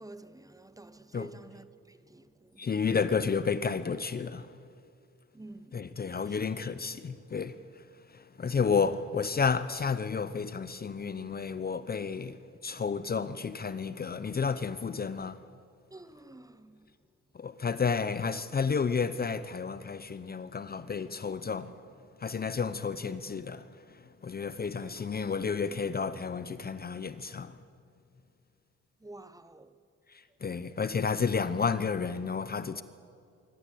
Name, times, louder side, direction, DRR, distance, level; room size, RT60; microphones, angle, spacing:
voice 1, 0.0-2.7 5.3-5.9 6.3-6.4 8.5-8.6 15.9-16.8 24.6-25.4 29.0-29.8, right 2 dB, 10° right, 1.1 m, -50 dB
voice 2, 2.6-4.6 5.7-7.8 8.1-15.4 17.3-21.8 22.2-27.6 30.1-32.8, left 5 dB, 30° left, 0.8 m, -31 dB
26.0 x 13.5 x 8.5 m
cardioid pair, 90°, 30 cm